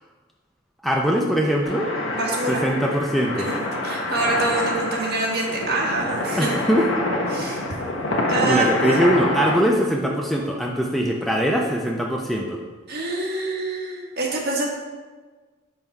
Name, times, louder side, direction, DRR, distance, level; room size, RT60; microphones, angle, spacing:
voice 1, 0.8-1.9 2.5-3.5 6.4-6.9 8.4-12.6, equal, ahead, -1 dB, 0.5 m, -22 dB
sound 1, 1.6-9.6, left 1 dB, 80° left, 1.0 m, -26 dB
voice 2, 2.1-2.6 3.8-6.5 7.3-7.8 8.3-9.0 12.9-14.7, right 2 dB, 55° right, -2 dB, 1.5 m, -25 dB
5.6 x 5.3 x 4.6 m, 1.4 s
head